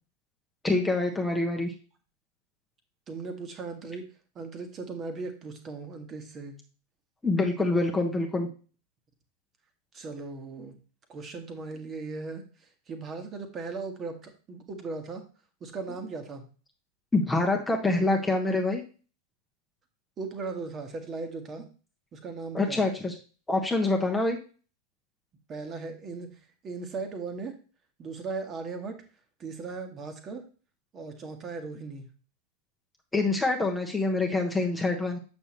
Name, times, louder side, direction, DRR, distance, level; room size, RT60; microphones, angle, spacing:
voice 1, 0.6-1.7 7.2-8.5 17.1-18.8 22.5-23.1 23.5-24.4 33.1-35.2, left 2 dB, 10° left, 2 dB, 1.1 m, -26 dB
voice 2, 3.1-4.1 4.3-6.6 9.9-10.7 11.1-12.4 12.9-15.2 15.6-16.4 20.2-21.7 22.1-22.8 25.5-26.3 26.6-27.6 28.0-29.0 29.4-30.4 30.9-32.0, right 4 dB, 25° right, 6 dB, 1.5 m, -37 dB
7.9 x 6.3 x 3.0 m, 0.36 s
figure-of-eight pair, 90°, 0 cm